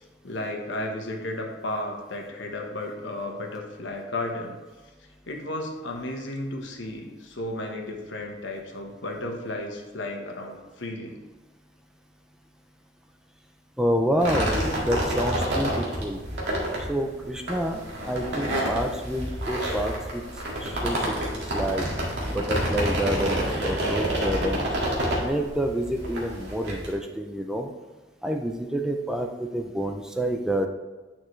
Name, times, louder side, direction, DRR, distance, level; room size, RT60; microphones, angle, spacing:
voice 1, 0.2-4.6 5.3-11.2, left 1 dB, 85° left, 2 dB, 1.2 m, -33 dB
voice 2, 13.8-16.2 16.9-20.2 20.6-21.8 22.3-24.7 25.2-27.7 28.2-30.7, equal, 5° right, 3 dB, 0.5 m, -28 dB
sound 1, 14.2-26.9, right 1 dB, 65° right, 2.1 m, -28 dB
9.1 x 6.0 x 3.2 m, 1.2 s
head